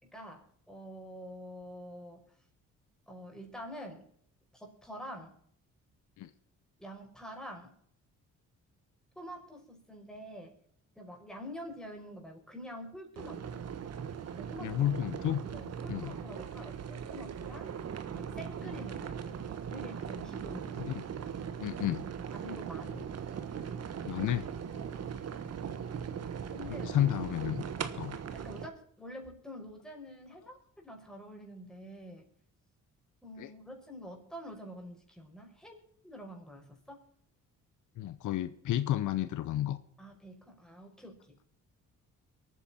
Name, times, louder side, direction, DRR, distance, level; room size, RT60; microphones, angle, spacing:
voice 1, 0.0-2.2 3.1-4.1 4.5-5.4 6.8-7.8 9.2-10.6 11.0-13.7 14.3-14.8 15.5-17.7 18.2-19.4 19.7-20.8 21.6-21.8 22.3-23.2 24.7-25.0 26.5-26.9 28.3-32.3 33.2-35.8 36.0-37.0 40.0-41.4, equal, ahead, 1 dB, 5.5 m, -47 dB
sound 1, 13.2-28.7, right 7 dB, 55° right, 1.5 m, -39 dB
voice 2, 14.6-15.4 15.9-16.1 20.8-20.9 21.6-22.1 24.0-24.5 26.8-27.6 27.9-28.2 33.4-33.5 38.0-39.8, left 12 dB, 80° left, 13 dB, 1.0 m, -31 dB
23.0 x 9.4 x 4.3 m, 0.66 s
cardioid pair, 90°, 30 cm